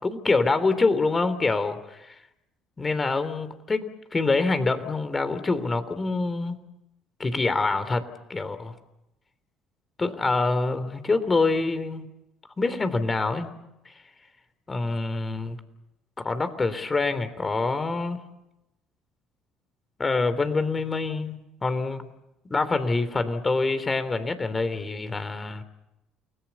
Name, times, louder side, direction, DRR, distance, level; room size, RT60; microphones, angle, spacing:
voice 1, 0.0-2.2 2.8-6.6 7.2-8.7 10.0-12.1 12.6-13.5 13.8-13.9 14.7-15.6 16.2-18.2 20.0-22.1 22.4-25.6, left 3 dB, 25° left, 11 dB, 3.3 m, -26 dB
29.5 x 20.0 x 7.1 m, 0.89 s
hypercardioid pair, 60°, 0 cm